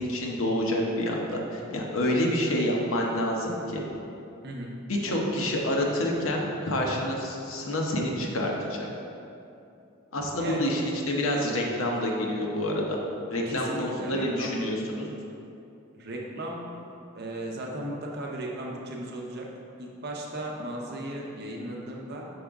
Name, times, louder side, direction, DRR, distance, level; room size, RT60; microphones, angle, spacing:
voice 1, 0.0-3.8 4.9-8.9 10.1-13.0 13.3-15.1, left 1 dB, 80° left, -1 dB, 0.8 m, -28 dB
voice 2, 13.3-14.6 15.9-19.5 19.8-22.3, right 1 dB, 50° right, -1 dB, 0.7 m, -36 dB
5.4 x 5.0 x 3.5 m, 2.7 s
head